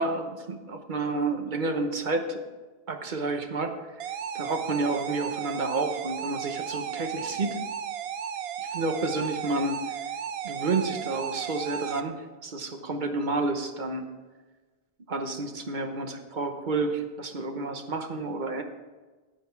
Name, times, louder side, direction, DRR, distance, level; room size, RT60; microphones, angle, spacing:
voice 1, 0.0-2.4 2.9-4.1 4.3-7.6 8.6-9.8 10.4-14.0 15.1-18.6, right 3 dB, 50° right, 6 dB, 1.1 m, -30 dB
sound 1, 4.0-12.0, right 8 dB, 80° right, 0.8 m, -34 dB
9.3 x 9.0 x 4.5 m, 1.3 s
omnidirectional pair, 1.0 m